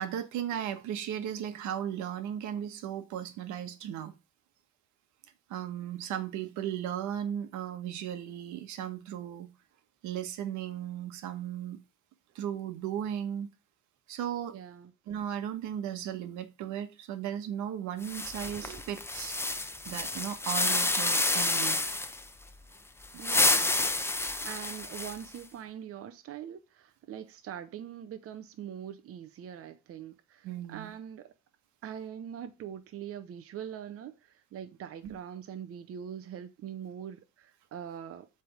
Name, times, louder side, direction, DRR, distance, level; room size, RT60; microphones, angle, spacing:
voice 1, 0.0-4.1 5.5-9.5 10.0-11.8 12.3-13.5 14.1-14.5 15.1-19.4 19.8-21.8 23.1-23.2 30.4-30.9 35.0-35.2, right 10 dB, 80° right, 1.2 m, -36 dB
voice 2, 14.5-14.9 23.2-31.3 31.8-38.3, right 9 dB, 50° right, 0.8 m, -43 dB
sound 1, 18.0-22.2 23.0-25.4, left 2 dB, 10° left, 0.7 m, -29 dB
7.6 x 3.5 x 6.4 m
cardioid pair, 100°, 29 cm